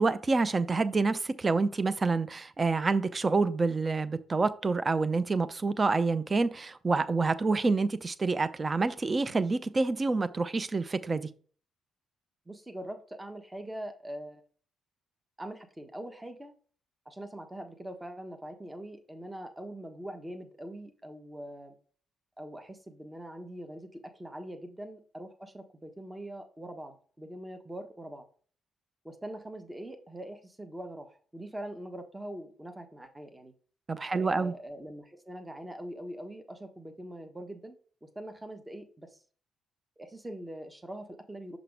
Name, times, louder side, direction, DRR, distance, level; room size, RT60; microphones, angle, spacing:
voice 1, 0.0-11.3 33.9-34.5, right 3 dB, 35° right, 14 dB, 0.6 m, -27 dB
voice 2, 12.5-14.4 15.4-16.5 17.0-21.7 22.4-28.2 29.0-33.5 34.1-39.2 40.0-41.6, right 1 dB, 15° right, 6 dB, 1.3 m, -43 dB
5.8 x 5.0 x 3.5 m, 0.42 s
figure-of-eight pair, 40°, 0 cm